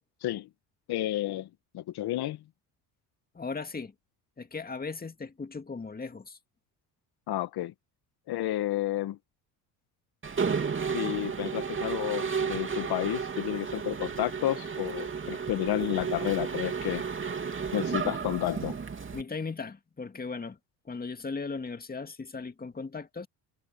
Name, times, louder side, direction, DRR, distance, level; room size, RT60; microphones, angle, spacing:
voice 1, 0.9-1.5 1.7-2.4 7.3-7.7 8.3-9.2 10.9-17.0 17.7-18.8, left 13 dB, 60° left, 1.8 m, -31 dB
voice 2, 3.3-3.9 4.4-6.4 19.1-20.6 20.8-23.3, left 4 dB, 20° left, 2.2 m, -37 dB
Mechanisms, 10.2-19.2, right 6 dB, 30° right, 2.9 m, -32 dB
supercardioid pair, 80°, 42 cm